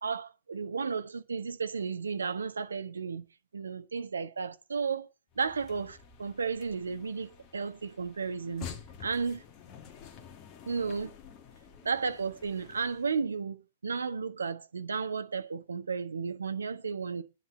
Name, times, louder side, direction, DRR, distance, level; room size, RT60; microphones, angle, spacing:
voice 1, 0.0-3.2 3.5-5.1 5.4-8.7 9.0-9.4 10.6-11.1 11.8-13.6 13.8-17.2, right 5 dB, 70° right, 1.3 m, -33 dB
sound 1, 5.3-13.2, left 7 dB, 30° left, 1.8 m, -49 dB
9.9 x 6.2 x 8.3 m
figure-of-eight pair, 110°, 0 cm